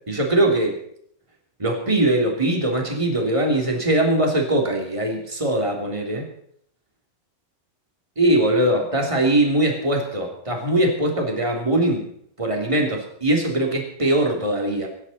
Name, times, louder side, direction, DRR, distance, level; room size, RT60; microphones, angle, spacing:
voice 1, 0.1-0.8 1.6-6.3 8.1-12.0 12.4-14.9, right 1 dB, 10° right, 1 dB, 1.5 m, -21 dB
25.5 x 11.0 x 4.2 m, 0.66 s
omnidirectional pair, 5.7 m